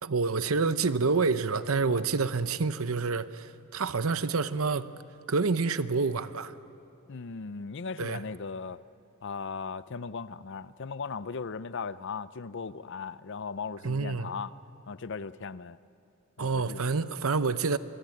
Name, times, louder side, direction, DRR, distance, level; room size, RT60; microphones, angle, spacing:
voice 1, 0.0-4.9 5.3-6.5 8.0-8.2 13.8-14.3 16.4-17.8, right 4 dB, 75° right, 0.8 m, -28 dB
voice 2, 7.1-8.8 9.2-14.5 14.9-15.8 16.4-17.0, left 5 dB, 60° left, 0.6 m, -38 dB
24.0 x 23.5 x 9.2 m
head